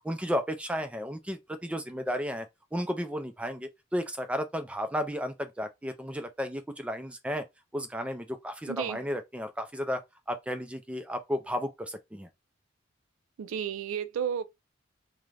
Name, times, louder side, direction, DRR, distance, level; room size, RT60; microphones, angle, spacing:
voice 1, 0.0-2.5 2.7-7.4 7.7-10.0 10.3-12.3, equal, 5° right, 0.3 m, -33 dB
voice 2, 8.7-9.0 13.4-14.4, right 8 dB, 85° right, 0.4 m, -32 dB
2.4 x 2.1 x 3.2 m
head